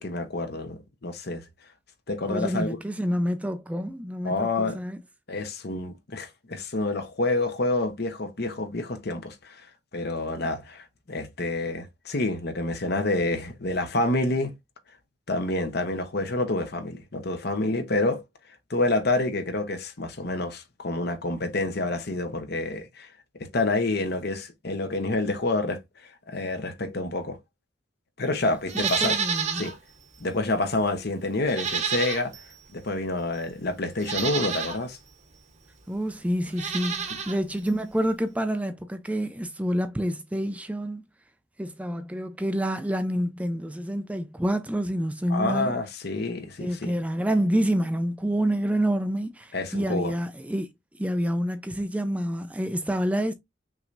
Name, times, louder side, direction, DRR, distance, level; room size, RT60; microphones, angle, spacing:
voice 1, 0.0-1.4 2.1-2.8 4.2-4.8 5.3-9.6 9.9-14.5 15.3-18.2 18.7-23.1 23.4-25.8 26.3-27.4 28.2-29.2 29.6-29.7 30.2-32.3 32.7-35.0 37.1-37.2 45.3-46.9 49.5-50.1, left 2 dB, 60° left, 1.0 m, -28 dB
voice 2, 2.3-5.0 28.7-29.7 35.9-41.0 41.6-45.7 46.6-50.7 51.0-53.3, equal, 5° right, 0.4 m, -28 dB
Livestock farm animals working animals, 28.7-29.8 30.1-30.2 31.5-32.5 33.3-33.4 34.0-34.8 36.5-37.4 37.7-37.8, right 6 dB, 40° right, 1.0 m, -29 dB
5.8 x 3.3 x 2.5 m
head